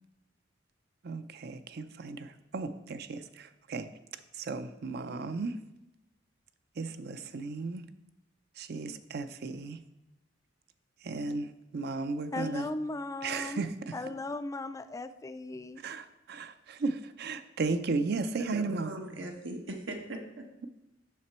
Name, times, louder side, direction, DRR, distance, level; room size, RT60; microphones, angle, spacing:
voice 1, 1.0-3.9 4.3-5.6 6.8-7.9 8.6-9.8 11.0-12.7 13.2-14.0 15.8-19.0, right 3 dB, 55° right, 0.5 m, -35 dB
voice 2, 12.3-13.7 13.9-15.8, left 2 dB, 15° left, 0.3 m, -37 dB
voice 3, 18.3-20.5, right 1 dB, 85° right, 1.3 m, -40 dB
7.4 x 5.9 x 4.3 m
head